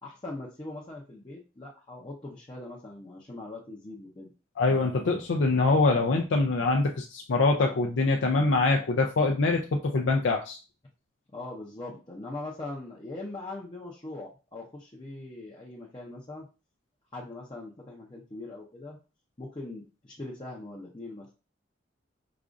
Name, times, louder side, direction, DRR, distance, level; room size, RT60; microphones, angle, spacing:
voice 1, 0.0-4.3 11.3-16.5 17.1-19.0 19.4-21.3, left 2 dB, 25° left, -4 dB, 0.6 m, -41 dB
voice 2, 4.6-10.6, left 3 dB, 70° left, 2 dB, 0.4 m, -24 dB
4.9 x 2.3 x 2.5 m, 0.32 s
head